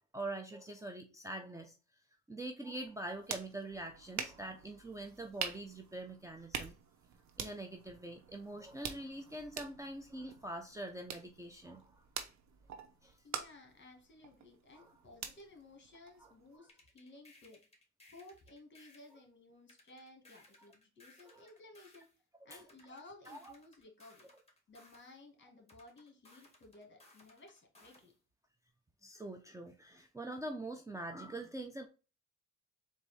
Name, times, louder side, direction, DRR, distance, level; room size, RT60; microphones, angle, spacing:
voice 1, 0.1-1.8 2.3-6.8 7.4-12.0 13.0-13.2 14.7-14.9 16.2-16.3 21.3-21.5 22.5-22.6 23.3-23.5 29.0-31.9, right 1 dB, 10° right, 0.6 m, -44 dB
sound 1, 2.8-16.6, right 7 dB, 65° right, 0.9 m, -47 dB
voice 2, 13.2-17.6 18.1-22.1 22.4-24.3 24.7-28.1, left 2 dB, 40° left, 1.9 m, -57 dB
sound 2, 16.7-19.2 19.7-22.1 22.7-25.1 25.7-28.1, left 2 dB, 20° left, 1.9 m, -63 dB
4.0 x 2.7 x 4.8 m
cardioid pair, 90°, 30 cm